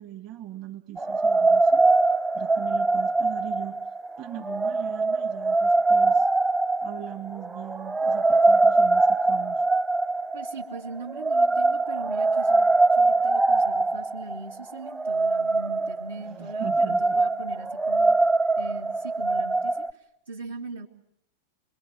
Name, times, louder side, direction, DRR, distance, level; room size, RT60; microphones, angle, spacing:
voice 1, 0.0-1.9 2.3-3.8 4.2-6.3 6.8-9.6 16.3-17.2, right 13 dB, 40° right, 5 dB, 2.2 m, -39 dB
sound 1, 1.0-19.9, right 3 dB, 15° right, 1.0 m, -23 dB
voice 2, 10.3-18.1 18.6-19.9 20.3-20.9, right 3 dB, 75° right, -2 dB, 2.5 m, -40 dB
27.0 x 22.0 x 7.9 m, 0.73 s
figure-of-eight pair, 90°, 0 cm